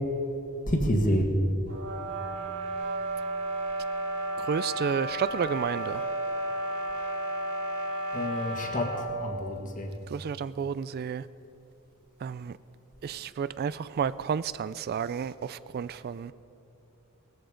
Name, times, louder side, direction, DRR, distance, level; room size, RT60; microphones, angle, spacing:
voice 1, 0.7-1.3 8.1-9.9, equal, 35° left, 4 dB, 1.8 m, -28 dB
sound 1, 1.7-9.2, right 1 dB, 85° right, 3.6 m, -33 dB
voice 2, 4.4-6.0 10.1-11.3 12.2-12.6 13.0-16.3, right 7 dB, 45° right, 16 dB, 0.3 m, -31 dB
19.0 x 14.5 x 5.1 m, 2.8 s
head